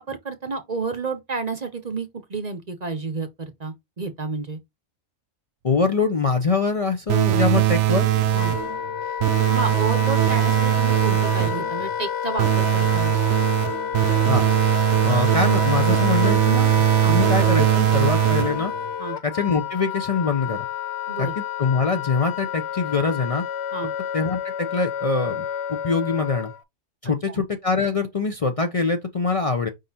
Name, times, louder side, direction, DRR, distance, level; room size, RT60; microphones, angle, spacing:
voice 1, 0.0-4.6 8.3-8.5 9.5-13.1 17.0-17.2 19.0-19.2 21.1-21.3 23.7-23.9 27.0-27.4, right 4 dB, 40° right, 0.8 m, -30 dB
voice 2, 5.6-8.1 14.3-14.5 15.0-18.7 19.2-20.6 21.2-21.3 21.6-23.4 24.1-26.5 27.0-29.7, left 4 dB, 35° left, 0.6 m, -24 dB
sound 1, 7.1-8.8 9.2-11.7 12.4-18.8, right 16 dB, 80° right, 0.9 m, -20 dB
Wind instrument woodwind instrument, 7.8-26.6, left 9 dB, 70° left, 0.8 m, -30 dB
5.2 x 3.7 x 2.7 m
omnidirectional pair, 1.2 m